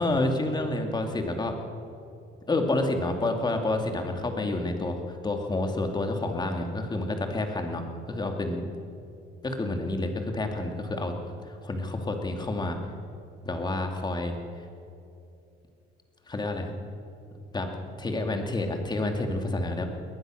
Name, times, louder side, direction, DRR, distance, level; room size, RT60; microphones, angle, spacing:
voice 1, 0.0-1.6 2.5-8.7 9.4-11.1 11.5-12.8 13.4-14.3 16.3-16.7 17.5-17.7 18.0-19.9, left 2 dB, 20° left, 4 dB, 2.5 m, -29 dB
21.5 x 19.5 x 6.4 m, 2.7 s
cardioid pair, 130°, 20 cm